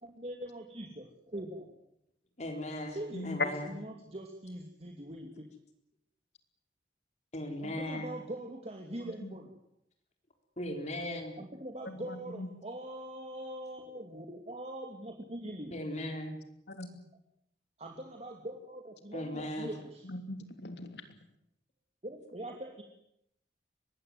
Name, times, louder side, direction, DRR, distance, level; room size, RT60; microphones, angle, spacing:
voice 1, 0.0-1.7 2.9-5.5 7.6-9.5 11.4-15.7 17.8-20.1 22.0-22.8, right 1 dB, 35° right, 1 dB, 2.7 m, -42 dB
voice 2, 2.4-3.0 3.2-3.7 7.3-8.1 10.6-11.4 15.7-16.4 19.1-19.7, left 1 dB, 40° left, 4 dB, 3.9 m, -37 dB
voice 3, 3.1-3.5 9.2-9.3 11.8-12.5 16.7-17.0 19.3-19.4 20.0-21.2, left 2 dB, 70° left, 8 dB, 3.2 m, -38 dB
23.5 x 20.0 x 9.7 m, 0.77 s
head